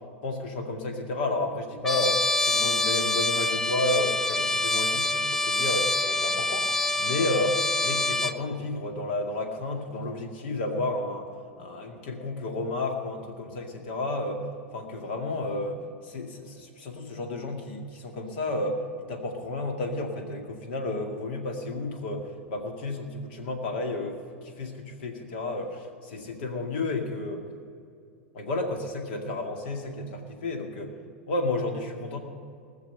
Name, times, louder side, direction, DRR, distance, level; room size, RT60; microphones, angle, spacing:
voice 1, 0.2-6.7 7.0-7.6 7.8-11.3 11.6-14.4 14.7-15.8 16.0-24.2 24.6-27.4 28.3-30.9 31.3-32.2, left 2 dB, 55° left, 3 dB, 2.1 m, -31 dB
Trumpet, 1.8-8.4, left 2 dB, 5° left, 0.4 m, -26 dB
20.0 x 6.7 x 6.7 m, 2.4 s
figure-of-eight pair, 90°, 7 cm